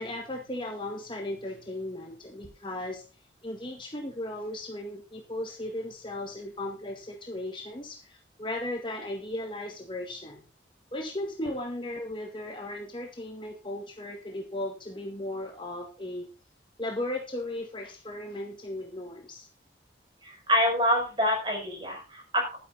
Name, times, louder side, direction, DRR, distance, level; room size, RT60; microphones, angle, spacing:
voice 1, 0.0-3.0 3.4-10.4 10.9-16.3 16.8-19.5, left 1 dB, 25° left, 2 dB, 1.8 m, -36 dB
voice 2, 20.2-22.6, left 1 dB, 25° right, 0 dB, 6.3 m, -26 dB
12.0 x 10.5 x 4.1 m, 0.33 s
head